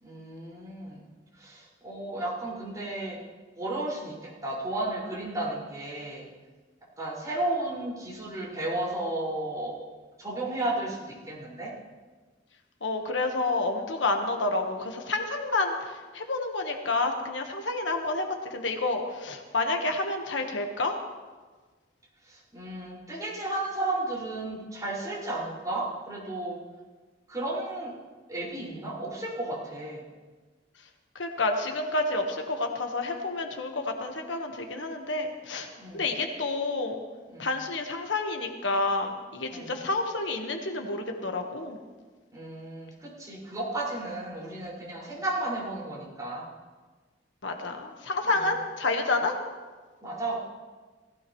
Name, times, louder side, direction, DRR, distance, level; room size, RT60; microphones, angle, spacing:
voice 1, 0.0-1.1 1.4-3.2 3.6-6.2 7.0-9.8 10.2-11.0 11.3-11.7 22.2-26.6 27.3-27.9 28.3-30.0 35.8-36.0 37.3-37.5 39.5-39.7 42.3-46.5 48.3-48.5 50.0-50.4, right 2 dB, 20° right, -7 dB, 5.3 m, -33 dB
voice 2, 12.8-18.2 18.5-21.0 31.2-37.0 37.4-41.8 47.4-49.3, left 2 dB, 75° left, 4 dB, 1.3 m, -29 dB
19.0 x 15.5 x 3.1 m, 1.4 s
head